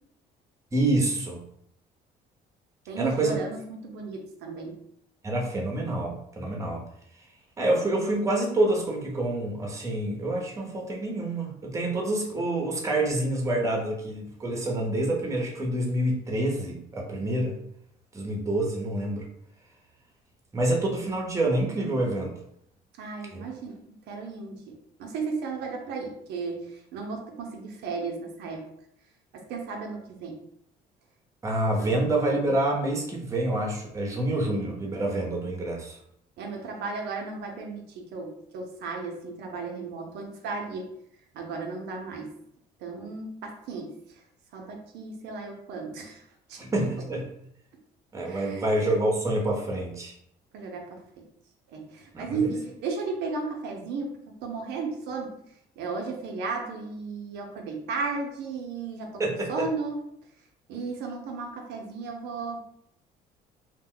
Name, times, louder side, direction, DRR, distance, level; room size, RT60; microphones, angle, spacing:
voice 1, 0.7-1.4 3.0-3.4 5.2-6.8 7.6-17.6 18.1-19.3 20.5-22.4 23.3-23.5 31.4-36.0 46.6-47.3 48.1-50.1 52.1-52.5 59.2-59.7, right 1 dB, 20° right, 0 dB, 0.7 m, -27 dB
voice 2, 2.9-4.8 23.0-23.8 24.1-28.7 29.3-30.4 31.8-32.1 36.4-40.9 41.3-42.3 42.8-43.9 44.5-46.2 46.5-46.7 48.2-48.6 50.5-51.0 51.7-54.2 54.4-55.3 55.8-59.1 59.5-60.0 60.7-62.7, right 4 dB, 85° right, 2 dB, 0.6 m, -34 dB
2.4 x 2.1 x 3.7 m, 0.73 s
cardioid pair, 110°, 17 cm